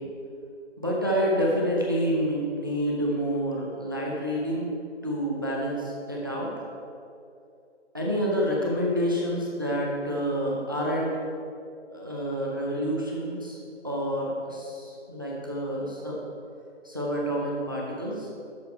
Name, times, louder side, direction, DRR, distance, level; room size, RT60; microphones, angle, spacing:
voice 1, 0.8-4.7 5.0-6.5 7.9-11.1 11.9-13.6 13.8-16.2 16.8-18.3, equal, 20° right, -3 dB, 0.5 m, -28 dB
7.7 x 6.7 x 4.5 m, 2.6 s
hypercardioid pair, 170°, 35 cm